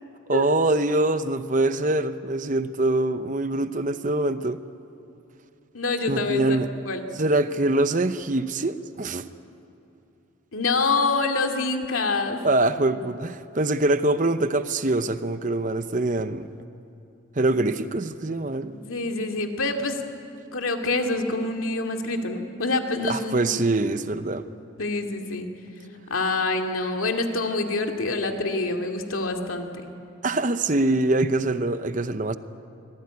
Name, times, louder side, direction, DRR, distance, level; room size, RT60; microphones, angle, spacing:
voice 1, 0.3-4.6 6.1-6.7 7.1-9.2 12.4-16.5 17.4-18.7 23.0-24.5 30.2-32.4, right 2 dB, 40° right, 11 dB, 0.8 m, -24 dB
voice 2, 5.7-7.0 10.5-12.4 18.8-20.0 20.5-23.6 24.8-25.5 26.1-29.7, left 3 dB, 90° left, 4 dB, 2.5 m, -26 dB
24.5 x 19.5 x 9.6 m, 2.8 s
head